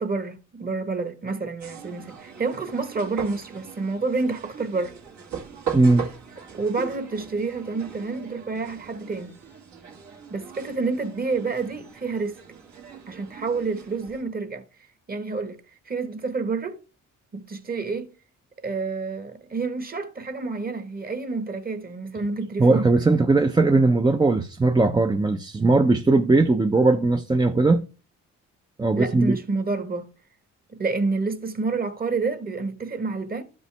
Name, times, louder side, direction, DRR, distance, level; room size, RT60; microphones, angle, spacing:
voice 1, 0.0-5.0 6.5-9.3 10.3-12.4 13.1-14.6 15.1-15.6 15.9-16.8 17.3-18.1 18.6-22.9 28.9-30.1 30.7-33.4, right 4 dB, 30° right, 1.3 m, -28 dB
sound 1, 1.6-14.2, right 7 dB, 70° right, 2.0 m, -39 dB
voice 2, 5.7-6.1 22.6-27.8 28.8-29.4, right 3 dB, 15° right, 0.5 m, -19 dB
12.0 x 5.4 x 3.3 m
cardioid pair, 90°, 30 cm